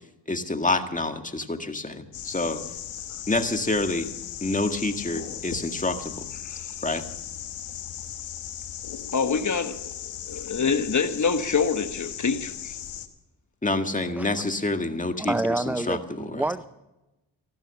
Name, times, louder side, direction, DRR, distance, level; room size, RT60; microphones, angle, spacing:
voice 1, 0.3-2.6 3.3-4.1 4.4-6.3 6.8-7.0 13.6-15.3 15.7-16.5, left 2 dB, 15° left, 1.8 m, -27 dB
sound 1, 2.1-13.1, left 10 dB, 80° left, 1.3 m, -37 dB
voice 2, 9.1-9.8 10.0-12.8, left 5 dB, 40° left, 1.2 m, -26 dB
voice 3, 15.2-16.7, right 2 dB, 5° right, 0.4 m, -27 dB
15.0 x 12.5 x 7.0 m
supercardioid pair, 55°, 46 cm